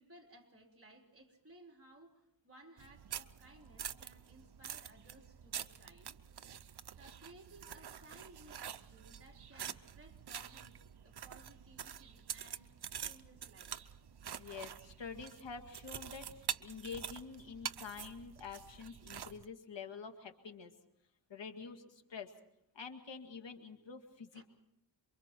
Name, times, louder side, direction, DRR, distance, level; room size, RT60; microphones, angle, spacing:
voice 1, 0.0-6.2 7.0-12.7 13.0-13.7 24.3-24.4, right 1 dB, 30° right, 1 dB, 4.0 m, -60 dB
sound 1, 2.8-19.4, right 9 dB, 65° right, 0.8 m, -46 dB
voice 2, 14.4-20.7 21.3-22.3 22.7-24.4, left 5 dB, 85° left, 6 dB, 2.1 m, -47 dB
27.5 x 24.0 x 4.5 m, 0.81 s
wide cardioid pair, 90°, 43 cm